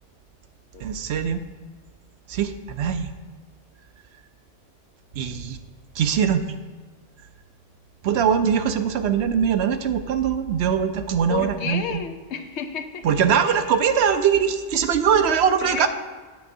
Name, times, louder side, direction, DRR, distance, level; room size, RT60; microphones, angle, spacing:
voice 1, 0.8-1.4 2.3-3.1 5.1-5.6 5.9-6.4 8.0-12.0 13.0-15.9, right 7 dB, 70° right, 9 dB, 0.8 m, -22 dB
voice 2, 11.3-13.0 13.5-13.6 15.6-15.9, left 6 dB, 75° left, 8 dB, 0.9 m, -31 dB
9.1 x 7.3 x 2.6 m, 1.4 s
omnidirectional pair, 1.2 m